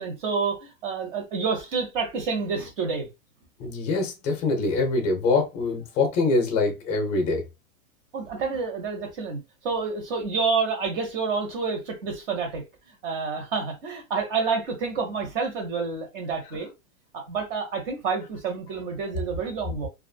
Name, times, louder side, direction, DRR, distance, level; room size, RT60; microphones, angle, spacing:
voice 1, 0.0-3.1 8.1-12.6 13.0-16.7 17.1-19.9, right 5 dB, 40° right, 1.1 m, -28 dB
voice 2, 3.6-7.4, left 3 dB, 15° left, 0.5 m, -24 dB
2.5 x 2.4 x 2.3 m
supercardioid pair, 160°, 40 cm